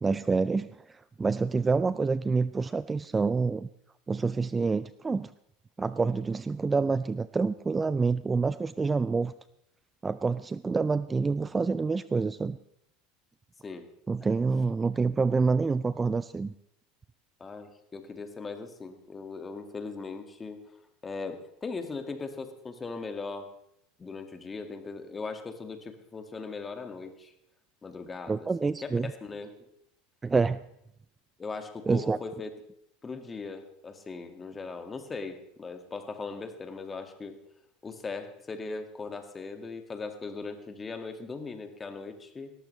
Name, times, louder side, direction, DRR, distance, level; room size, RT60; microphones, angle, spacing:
voice 1, 0.0-3.7 4.1-5.3 5.8-9.3 10.0-12.6 14.1-16.5 28.3-29.1 30.2-30.6 31.9-32.2, right 4 dB, 20° right, 16 dB, 0.4 m, -27 dB
voice 2, 17.4-20.6 21.0-23.5 24.0-27.3 27.8-29.5 31.4-32.5 33.0-37.4 37.8-42.5, left 4 dB, 25° left, 7 dB, 2.0 m, -39 dB
18.5 x 14.0 x 3.3 m, 0.78 s
hypercardioid pair, 85°, 0 cm